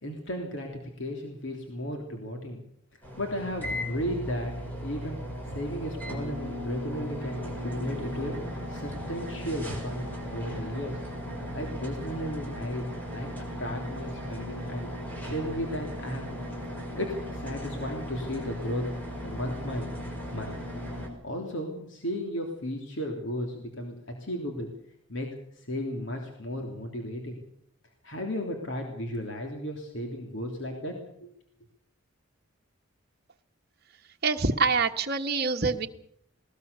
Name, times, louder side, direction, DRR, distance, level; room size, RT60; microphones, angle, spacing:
voice 1, 0.0-2.6 3.2-4.5 4.8-5.2 5.5-8.3 8.7-11.0 11.5-13.3 13.6-14.9 15.2-16.2 17.0-18.8 19.2-20.1 20.3-20.5 21.2-23.9 24.2-24.7 25.1-27.4 28.0-31.3, equal, 60° left, 2 dB, 3.3 m, -34 dB
sound 1, 3.0-21.1, equal, 10° left, 5.1 m, -37 dB
voice 2, 34.2-35.9, right 4 dB, 50° right, 4 dB, 1.3 m, -25 dB
20.5 x 19.5 x 6.9 m, 0.71 s
head